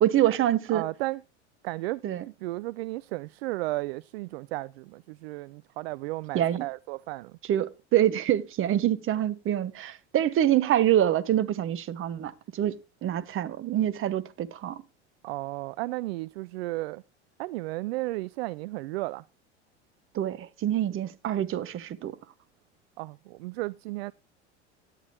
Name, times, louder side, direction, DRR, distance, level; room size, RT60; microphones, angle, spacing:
voice 1, 0.0-0.8 2.0-2.2 6.3-6.6 7.5-14.8 20.1-22.2, right 11 dB, 35° right, 1.2 m, -26 dB
voice 2, 0.7-1.2 1.6-2.0 2.4-7.4 15.2-17.0 17.4-19.2 23.0-24.1, right 20 dB, 60° right, 0.5 m, -34 dB
17.0 x 11.5 x 2.2 m
figure-of-eight pair, 80°, 35 cm